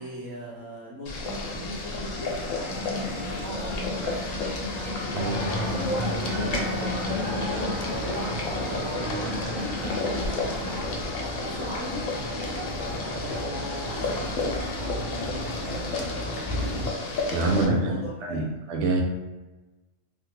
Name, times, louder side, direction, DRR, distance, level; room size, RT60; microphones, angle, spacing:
voice 1, 0.0-4.4 5.4-7.7 7.9-10.9 11.4-12.1 13.1-14.2 15.2-16.8 17.4-18.5, equal, 90° right, -6 dB, 1.5 m, -38 dB
Boiling, 1.1-17.7, left 3 dB, 75° left, 1.0 m, -32 dB
sound 1, 2.7-10.8, left 1 dB, 35° right, 1.0 m, -33 dB
sound 2, 5.2-16.9, equal, 50° left, 0.7 m, -34 dB
voice 2, 17.3-18.4 18.7-19.0, right 2 dB, 65° right, 0 dB, 0.8 m, -25 dB
3.4 x 2.2 x 3.1 m, 1.1 s
omnidirectional pair, 1.4 m